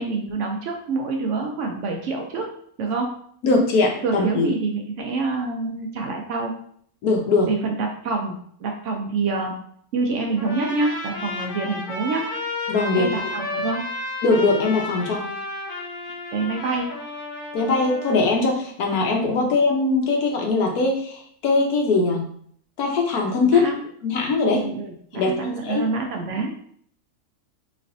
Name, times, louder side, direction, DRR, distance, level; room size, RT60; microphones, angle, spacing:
voice 1, 0.0-2.5 2.8-3.1 4.0-6.5 7.5-9.5 9.9-12.3 12.9-13.9 16.3-16.9 19.4-19.5 23.5-23.8 24.5-26.5, right 3 dB, 65° right, 2 dB, 0.8 m, -26 dB
voice 2, 3.4-4.5 7.0-7.5 12.7-13.1 14.2-15.3 17.5-22.3 22.8-23.7 24.0-24.6 25.1-25.9, left 3 dB, 85° left, 1 dB, 1.3 m, -21 dB
Trumpet, 10.4-18.3, left 2 dB, 65° left, 1.4 m, -32 dB
4.0 x 3.2 x 2.5 m, 0.62 s
omnidirectional pair, 1.5 m